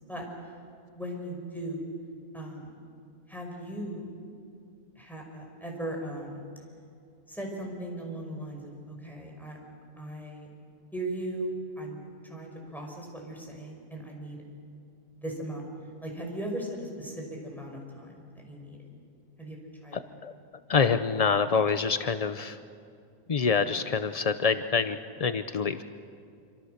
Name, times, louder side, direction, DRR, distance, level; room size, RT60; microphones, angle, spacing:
voice 1, 0.9-1.9 2.3-2.8 3.3-4.1 5.0-6.4 7.3-9.6 10.0-10.5 10.9-14.4 15.2-15.6 16.0-18.8 19.4-20.0 23.5-23.7, right 1 dB, ahead, 0 dB, 5.5 m, -38 dB
voice 2, 20.7-22.6 23.3-25.8, left 5 dB, 75° left, 10 dB, 0.3 m, -26 dB
26.5 x 26.0 x 6.6 m, 2.4 s
omnidirectional pair, 1.6 m